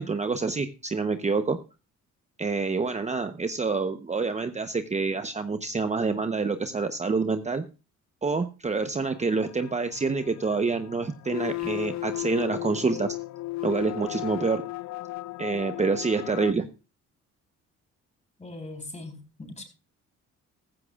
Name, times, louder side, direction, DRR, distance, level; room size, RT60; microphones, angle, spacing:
voice 1, 0.0-1.6 2.4-7.6 8.2-13.2 13.6-14.6 15.4-16.7, right 4 dB, 25° right, 0.9 m, -27 dB
sound 1, 9.3-16.5, left 19 dB, 65° left, 0.5 m, -35 dB
voice 2, 18.4-19.6, left 2 dB, 20° left, 4.3 m, -40 dB
15.0 x 14.5 x 2.4 m
cardioid pair, 90°, 30 cm